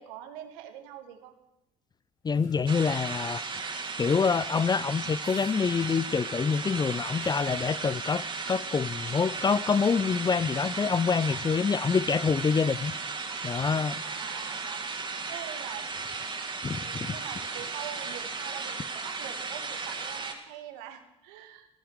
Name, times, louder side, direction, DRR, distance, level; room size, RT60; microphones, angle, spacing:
voice 1, 0.0-1.3 12.5-12.8 14.0-14.9 15.3-15.9 16.7-21.7, right 11 dB, 75° right, 2.1 m, -44 dB
sound 1, 1.9-3.1 3.7-3.8 4.1-4.2 4.9-6.0 6.7-7.9 8.4-8.5 9.5-9.7, left 3 dB, 70° left, 4.6 m, -58 dB
voice 2, 2.2-3.4 4.0-12.9 13.4-14.0 16.6-17.2, left 5 dB, 25° left, 0.5 m, -26 dB
sound 2, 2.7-20.3, right 4 dB, 30° right, 3.1 m, -35 dB
18.0 x 12.5 x 6.3 m
hypercardioid pair, 60°, 16 cm